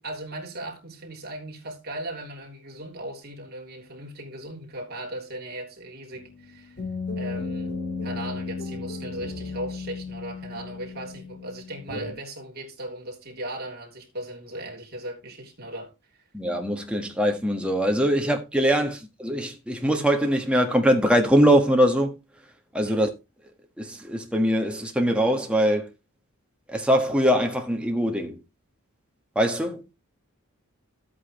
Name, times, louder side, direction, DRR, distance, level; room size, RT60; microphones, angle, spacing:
voice 1, 0.0-6.8 7.1-7.7 8.0-16.2 22.8-23.0, right 1 dB, 45° right, 3.2 m, -38 dB
sound 1, 6.1-12.1, left 3 dB, 50° left, 4.0 m, -34 dB
voice 2, 16.3-22.1 22.7-23.1 23.8-25.9 26.7-28.4 29.3-29.8, equal, 5° right, 1.5 m, -22 dB
12.5 x 8.4 x 3.1 m
head